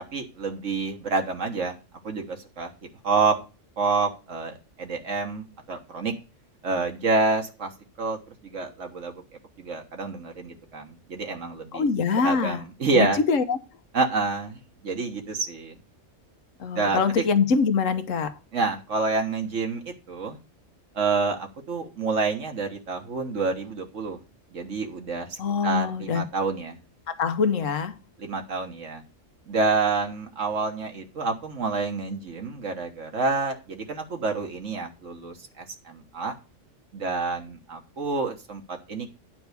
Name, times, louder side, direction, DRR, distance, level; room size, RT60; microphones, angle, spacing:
voice 1, 0.0-1.8 2.0-2.7 3.0-3.4 3.8-6.1 6.6-7.7 8.0-9.2 9.6-11.9 12.2-13.2 13.9-15.8 16.7-17.0 18.5-20.4 20.9-21.4 21.7-24.2 24.5-26.8 28.2-29.0 29.5-36.3 36.9-39.1, right 4 dB, 75° right, 1.6 m, -28 dB
voice 2, 11.7-12.6 12.9-13.6 16.6-18.3 25.4-26.2 27.1-28.0, left 5 dB, 85° left, 1.3 m, -24 dB
9.5 x 4.7 x 6.7 m
omnidirectional pair, 1.3 m